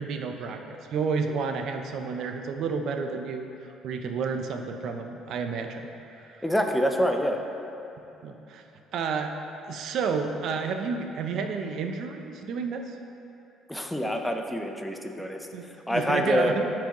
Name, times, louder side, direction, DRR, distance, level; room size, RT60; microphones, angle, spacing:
voice 1, 0.0-3.5 3.8-5.9 6.2-6.4 8.2-8.6 8.9-9.3 9.7-13.0 15.2-16.7, right 5 dB, 65° right, 5 dB, 0.6 m, -31 dB
voice 2, 6.4-7.4 13.7-16.5, equal, 5° left, 3 dB, 0.6 m, -26 dB
12.5 x 4.8 x 3.0 m, 2.9 s
cardioid pair, 120°, 0 cm